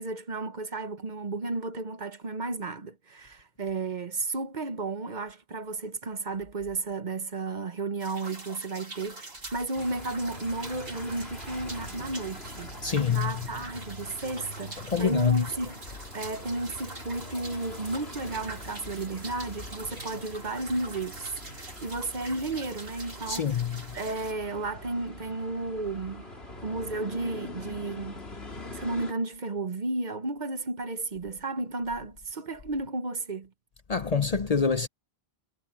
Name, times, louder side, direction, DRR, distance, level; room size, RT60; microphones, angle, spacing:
voice 1, 0.0-12.7 13.1-15.8 16.1-23.7 23.9-26.3 26.6-28.2 28.7-33.5, right 2 dB, 50° right, 1.2 m, -33 dB
sound 1, 8.0-24.3, right 2 dB, 65° right, 3.2 m, -45 dB
sound 2, 9.7-29.1, left 1 dB, 80° left, 4.3 m, -43 dB
voice 2, 12.8-13.4 14.8-15.4 23.3-23.9 33.9-34.9, left 6 dB, 45° left, 0.7 m, -26 dB
omnidirectional pair, 1.0 m